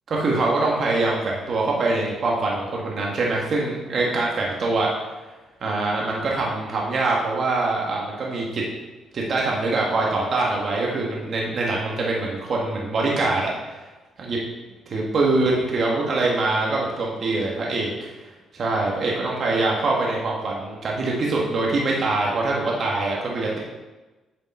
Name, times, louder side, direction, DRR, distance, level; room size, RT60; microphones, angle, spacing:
voice 1, 0.1-4.9 5.6-8.6 9.1-13.8 14.2-14.4 14.9-17.9 18.5-23.6, right 2 dB, 55° right, -3 dB, 1.3 m, -24 dB
7.5 x 5.2 x 4.2 m, 1.2 s
cardioid pair, 90°, 0 cm